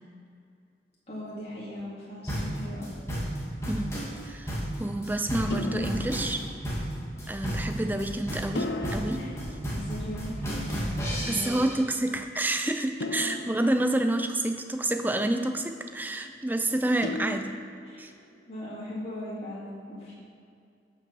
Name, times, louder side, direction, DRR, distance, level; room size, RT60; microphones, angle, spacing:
voice 1, 1.1-2.9 9.1-9.4 9.6-10.9 11.2-11.6 17.9-18.0 18.5-20.1, left 1 dB, 35° left, -8 dB, 2.7 m, -38 dB
sound 1, 2.3-11.8, equal, 15° left, 2.3 m, -32 dB
sound 2, 2.8-3.3 5.5-7.0 8.5-10.5 13.0-14.7 17.0-18.2, left 1 dB, 75° left, 0.9 m, -37 dB
voice 2, 4.2-6.5 7.3-9.2 11.3-17.5 18.0-18.1, right 1 dB, 10° right, 6 dB, 0.5 m, -28 dB
12.5 x 6.1 x 6.2 m, 2.4 s
head